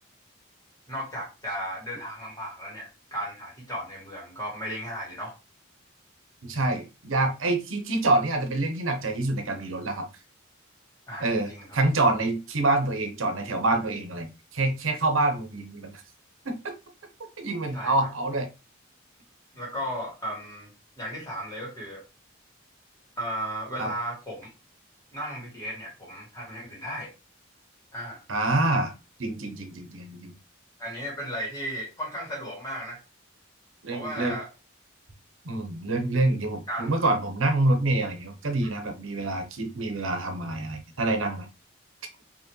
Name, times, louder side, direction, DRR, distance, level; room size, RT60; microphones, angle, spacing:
voice 1, 0.9-5.3 11.1-11.8 17.7-18.1 19.5-20.7 21.0-22.0 23.2-24.5 25.1-27.1 27.9-28.2 30.8-33.0 33.9-34.5 36.7-36.9 38.6-38.7, equal, 20° left, -4 dB, 2.3 m, -35 dB
voice 2, 6.4-10.1 11.2-16.0 16.4-16.7 17.4-18.5 23.8-23.9 28.3-28.9 29.2-30.3 33.8-34.4 35.4-41.5, right 2 dB, 85° right, 5 dB, 0.9 m, -26 dB
4.7 x 3.0 x 3.1 m, 0.29 s
head